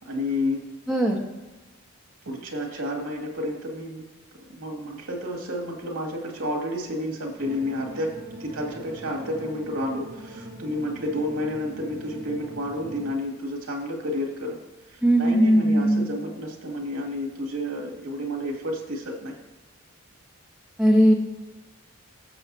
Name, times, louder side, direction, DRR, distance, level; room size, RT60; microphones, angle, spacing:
voice 1, 0.0-0.6 2.2-4.1 4.5-14.6 14.9-19.4, left 1 dB, 80° right, 1 dB, 2.5 m, -30 dB
voice 2, 0.9-1.2 15.0-16.1 20.8-21.1, equal, ahead, -2 dB, 1.3 m, -18 dB
sound 1, 7.4-13.1, right 1 dB, 40° right, 1.1 m, -42 dB
16.0 x 7.0 x 2.8 m, 1.1 s
head